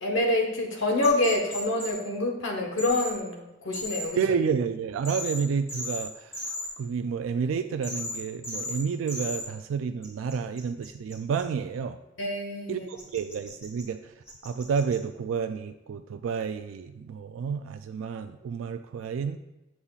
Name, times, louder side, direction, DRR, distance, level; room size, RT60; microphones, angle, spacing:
voice 1, 0.0-4.2 12.2-12.9, left 2 dB, 70° left, 1 dB, 1.1 m, -27 dB
sound 1, 1.0-1.9 2.8-3.1 3.7-4.1 5.0-5.4 5.7-6.0 6.3-6.7 7.8-8.2 8.4-8.8 9.1-9.4 10.0-11.4 13.0-13.8 14.3-14.9, left 1 dB, 15° left, 2.0 m, -35 dB
voice 2, 4.1-12.0 12.7-14.1 14.4-19.4, right 6 dB, 80° right, 7 dB, 0.3 m, -30 dB
8.2 x 5.5 x 2.4 m, 0.98 s
head